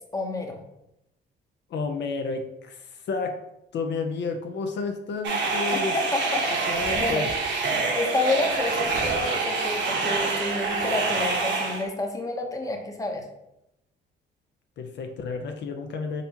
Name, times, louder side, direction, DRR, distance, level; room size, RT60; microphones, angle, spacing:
voice 1, 0.1-0.6 5.7-6.6 6.9-7.2 7.9-13.2, left 2 dB, 15° left, 3 dB, 0.8 m, -29 dB
voice 2, 1.7-3.4 3.7-6.0 6.7-7.3 7.6-7.8 14.8-16.2, left 4 dB, 65° left, 5 dB, 0.6 m, -31 dB
sound 1, 5.2-11.8, right 3 dB, 65° right, 1.0 m, -26 dB
4.3 x 4.0 x 2.8 m, 0.86 s
cardioid pair, 90°, 20 cm